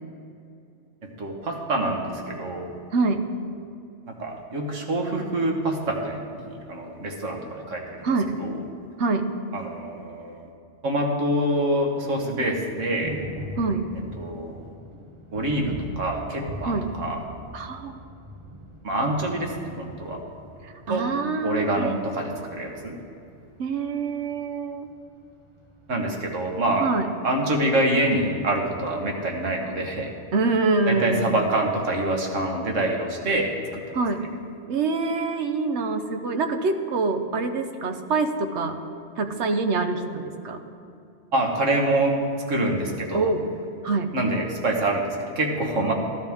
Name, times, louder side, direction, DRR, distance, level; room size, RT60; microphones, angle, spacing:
voice 1, 1.0-2.7 4.1-8.1 8.4-8.5 9.5-10.5 10.8-13.2 14.2-14.7 15.3-17.2 18.8-20.2 20.9-21.0 21.4-23.0 25.9-26.9 27.2-30.1 30.9-34.0 41.3-42.2 42.5-43.3 44.1-45.9, right 1 dB, 85° right, 1 dB, 1.7 m, -26 dB
voice 2, 2.9-3.3 8.0-8.3 9.0-9.3 13.6-13.8 16.6-16.9 17.5-18.0 20.6-22.0 23.6-24.9 26.8-27.1 30.3-31.4 33.9-34.2 34.7-38.8 39.2-40.6 43.1-43.4 43.8-44.1 45.8-45.9, right 3 dB, 70° right, 7 dB, 1.1 m, -25 dB
Thunder, 11.9-29.8, equal, 30° right, 0.9 m, -43 dB
14.5 x 12.0 x 3.5 m, 2.6 s
omnidirectional pair, 1.2 m